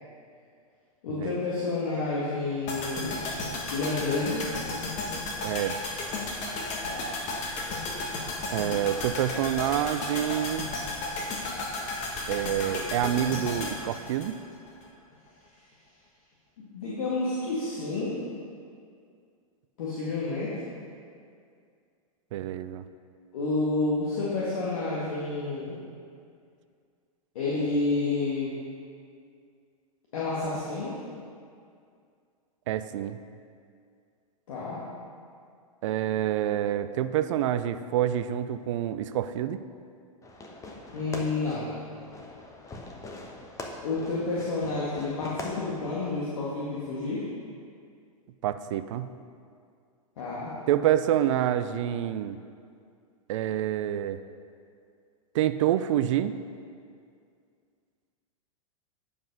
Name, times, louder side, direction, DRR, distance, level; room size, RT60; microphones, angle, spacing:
voice 1, 1.0-3.2 3.7-4.5 6.9-7.1 16.7-18.2 19.8-20.6 23.3-25.8 27.4-28.5 30.1-31.0 34.5-34.8 40.9-41.8 43.8-47.2 50.2-50.5, left 3 dB, 65° left, -7 dB, 2.0 m, -29 dB
sound 1, 2.7-14.9 15.1-15.2, left 2 dB, 40° left, 1.6 m, -33 dB
voice 2, 5.4-5.8 8.5-10.7 12.3-14.4 22.3-22.8 32.7-33.2 35.8-39.6 48.4-49.1 50.7-52.4 53.3-54.2 55.3-56.3, right 11 dB, 55° right, 12 dB, 0.5 m, -27 dB
Fireworks, 40.2-46.2, left 2 dB, 15° left, 1.0 m, -42 dB
9.7 x 5.3 x 5.4 m, 2.3 s
hypercardioid pair, 105°, 19 cm